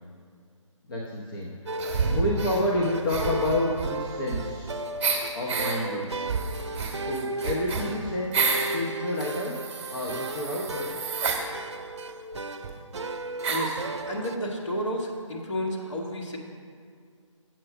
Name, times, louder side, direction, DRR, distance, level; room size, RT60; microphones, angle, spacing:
voice 1, 0.9-1.7 2.1-4.8 5.3-6.1 7.0-9.7 9.9-10.9, left 1 dB, 40° left, -3 dB, 1.0 m, -29 dB
sound 1, 1.7-14.4, right 2 dB, 60° right, 0.6 m, -35 dB
sound 2, 1.8-2.6 3.0-4.7 5.0-5.8 6.2-8.8 9.2-11.4 12.3-12.4 12.6-12.7 13.4-13.8, right 5 dB, 20° right, 1.1 m, -29 dB
voice 2, 13.5-16.4, equal, 60° left, -2 dB, 1.9 m, -31 dB
7.7 x 7.6 x 5.0 m, 2.2 s
figure-of-eight pair, 145°, 17 cm